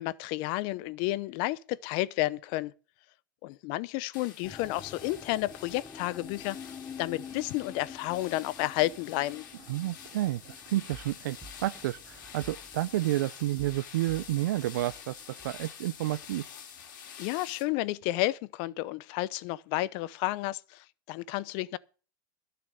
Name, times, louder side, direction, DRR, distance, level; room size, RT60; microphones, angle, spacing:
voice 1, 0.0-2.7 3.4-9.4 17.2-21.8, left 17 dB, 55° left, 0.7 m, -31 dB
sound 1, 4.1-17.6, left 8 dB, 80° left, 3.3 m, -48 dB
sound 2, 4.4-15.6 15.8-16.5 17.1-17.2, left 6 dB, 20° left, 0.9 m, -49 dB
voice 2, 9.7-16.5, right 15 dB, 80° right, 0.5 m, -30 dB
sound 3, 10.5-15.7 16.1-16.2, right 3 dB, 20° right, 1.7 m, -53 dB
12.0 x 6.8 x 7.7 m
supercardioid pair, 120°, 10 cm